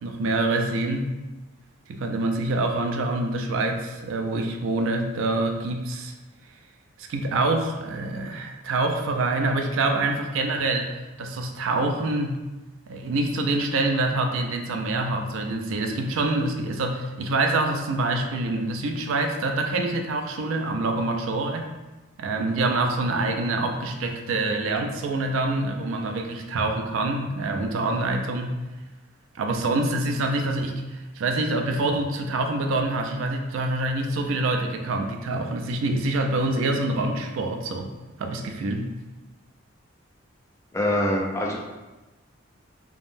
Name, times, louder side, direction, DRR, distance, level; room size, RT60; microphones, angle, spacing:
voice 1, 0.0-1.1 1.9-6.1 7.0-12.4 12.9-21.7 22.2-28.6 29.3-37.9 38.2-38.9, right 2 dB, 75° right, 4 dB, 0.3 m, -26 dB
voice 2, 40.7-41.6, left 1 dB, 15° left, -1 dB, 0.3 m, -24 dB
3.4 x 2.0 x 2.5 m, 1.1 s
head